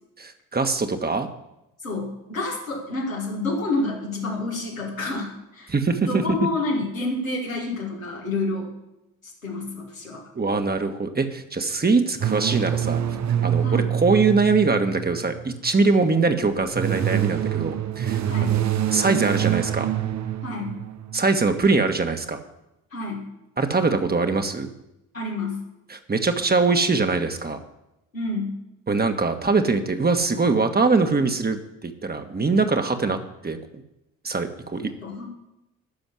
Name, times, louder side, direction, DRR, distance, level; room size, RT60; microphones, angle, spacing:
voice 1, 0.2-1.3 5.7-6.4 10.3-13.0 13.4-18.6 18.9-19.9 21.1-22.4 23.6-24.7 25.9-27.6 28.9-33.6 34.2-34.9, right 4 dB, 25° right, 6 dB, 1.7 m, -22 dB
voice 2, 1.8-5.7 6.0-8.7 9.2-10.2 13.6-13.8 18.2-18.6 20.4-20.8 22.9-23.2 25.1-25.6 28.1-28.6 34.7-35.3, left 2 dB, 85° left, -3 dB, 2.5 m, -29 dB
sound 1, 12.2-15.6 16.5-21.3, right 10 dB, 45° right, 1.0 m, -25 dB
13.0 x 7.0 x 10.0 m, 0.91 s
figure-of-eight pair, 40°, 39 cm